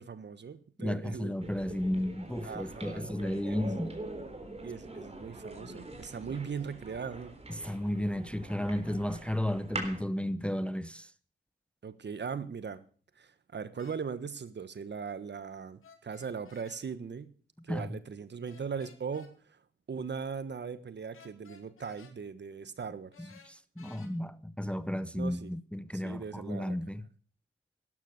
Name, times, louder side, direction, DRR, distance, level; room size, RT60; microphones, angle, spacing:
voice 1, 0.0-1.3 2.4-3.1 3.4-3.6 4.6-7.3 11.8-12.8 13.2-17.3 17.7-19.6 19.9-23.3 25.1-25.5 25.9-26.8, right 6 dB, 55° right, 1.4 m, -39 dB
voice 2, 0.8-3.9 7.5-11.1 17.7-18.0 23.4-27.0, left 1 dB, 5° left, 0.7 m, -33 dB
sound 1, 1.4-10.0, right 2 dB, 30° right, 3.8 m, -43 dB
sound 2, 13.8-14.0 15.8-16.8 18.5-19.3 21.1-22.2 23.1-24.1, left 5 dB, 75° left, 2.5 m, -56 dB
12.5 x 12.0 x 6.7 m
cardioid pair, 60°, 21 cm